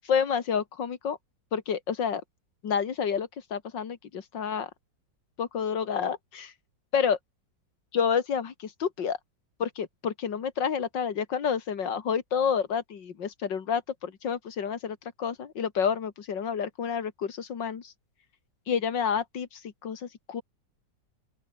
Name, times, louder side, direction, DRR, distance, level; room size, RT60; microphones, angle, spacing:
voice 1, 0.0-1.2 1.5-2.2 2.6-4.7 5.4-6.5 6.9-7.2 7.9-9.2 9.6-17.9 18.7-20.4, left 7 dB, 75° left, 2.5 m, -29 dB
open air
omnidirectional pair, 2.0 m